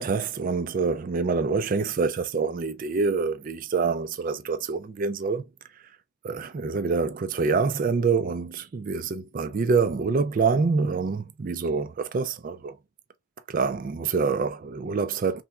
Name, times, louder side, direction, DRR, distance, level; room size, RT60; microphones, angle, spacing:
voice 1, 0.0-5.5 6.2-12.8 13.5-15.4, right 4 dB, 40° right, 0.3 m, -26 dB
3.4 x 2.9 x 2.2 m
head